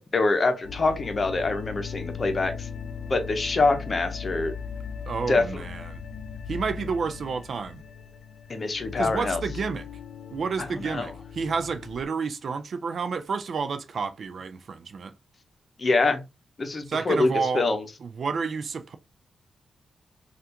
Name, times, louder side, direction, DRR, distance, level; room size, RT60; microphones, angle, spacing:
voice 1, 0.0-2.7 3.1-4.5 5.3-5.6 8.5-9.4 10.6-11.1 15.8-16.2 16.6-17.3 17.5-17.8, left 3 dB, 40° left, 0.7 m, -25 dB
sound 1, 0.6-12.0, left 6 dB, 85° left, 0.4 m, -38 dB
voice 2, 5.1-6.0 6.5-7.8 9.0-9.9 10.3-15.1 16.9-17.6 18.0-19.0, right 5 dB, 60° right, 0.4 m, -30 dB
3.3 x 2.4 x 2.8 m
cardioid pair, 90°, 0 cm